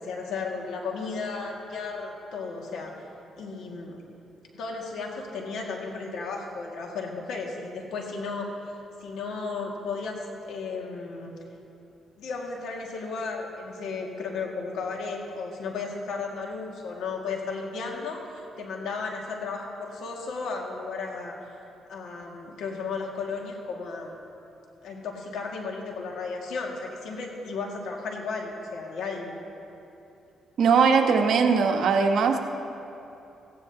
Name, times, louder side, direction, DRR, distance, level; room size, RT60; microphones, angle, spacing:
voice 1, 0.0-3.1 3.4-4.0 4.5-8.5 9.0-11.3 12.2-18.2 18.6-21.4 21.9-24.1 24.8-29.4, left 4 dB, 75° left, 0 dB, 2.0 m, -34 dB
voice 2, 30.6-32.4, right 5 dB, 65° right, 3 dB, 1.1 m, -20 dB
18.0 x 15.5 x 2.8 m, 2.9 s
cardioid pair, 90°, 0 cm